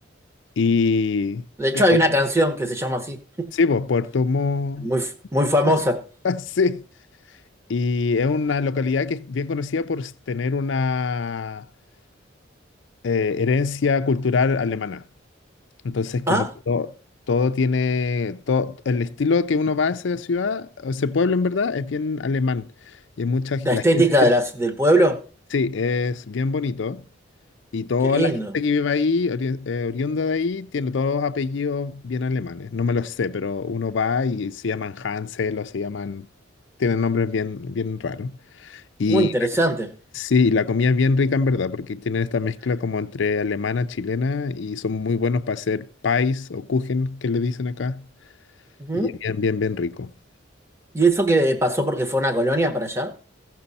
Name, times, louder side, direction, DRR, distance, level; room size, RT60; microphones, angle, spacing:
voice 1, 0.6-1.4 1.7-2.0 3.5-4.9 6.2-6.9 7.7-11.6 13.0-15.0 15.8-16.9 17.3-22.7 23.2-24.3 25.5-27.0 27.7-36.3 36.8-38.3 38.6-39.3 40.2-48.1 48.9-50.1, left 4 dB, 70° left, 0.5 m, -24 dB
voice 2, 1.6-3.5 4.8-6.0 16.3-16.5 23.6-25.2 28.0-28.5 39.1-39.9 48.8-49.1 50.9-53.1, right 1 dB, 15° right, 1.1 m, -20 dB
15.5 x 6.1 x 4.1 m
head